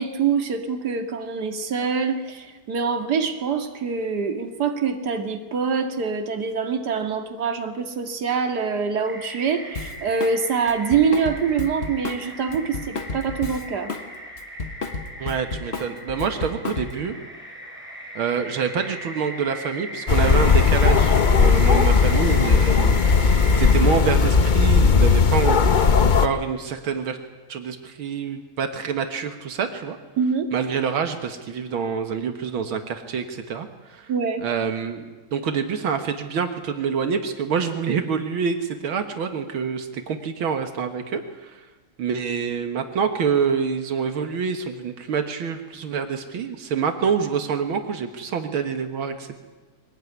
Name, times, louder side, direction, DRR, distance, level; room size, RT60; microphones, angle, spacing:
voice 1, 0.0-13.9 30.2-30.5 34.1-34.4, right 5 dB, 55° right, 5 dB, 2.5 m, -25 dB
sound 1, 9.0-23.7, equal, 5° right, 5.2 m, -38 dB
Drum kit, 9.7-10.4 10.7-14.1 14.4-17.1, left 3 dB, 35° left, 1.5 m, -32 dB
voice 2, 15.2-17.1 18.2-25.8 26.2-27.2 27.5-30.0 30.5-34.1 34.4-41.7 42.0-49.4, right 6 dB, 80° right, 7 dB, 2.3 m, -26 dB
sound 2, 20.1-26.3, left 5 dB, 70° left, 0.4 m, -17 dB
23.0 x 18.5 x 9.5 m, 1.3 s
omnidirectional pair, 2.2 m